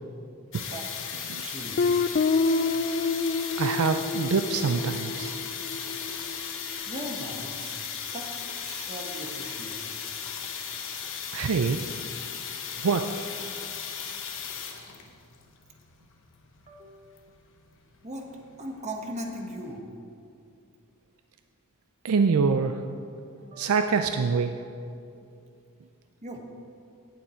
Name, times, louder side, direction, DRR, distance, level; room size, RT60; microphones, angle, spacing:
sound 1, 0.5-19.8, left 7 dB, 60° left, 1.1 m, -37 dB
voice 1, 0.5-0.9 1.2-2.0 6.7-7.8 8.1-8.3 8.6-9.9 16.7-17.1 18.0-19.8 23.4-23.7 26.2-26.4, right 1 dB, 30° right, 2 dB, 1.3 m, -39 dB
Guitar, 1.8-6.4, left 4 dB, 45° left, 0.4 m, -28 dB
voice 2, 3.6-5.3 11.3-11.8 12.8-13.1 22.0-22.8 23.6-24.5, right 5 dB, 70° right, 7 dB, 0.4 m, -25 dB
17.5 x 7.0 x 4.4 m, 2.5 s
head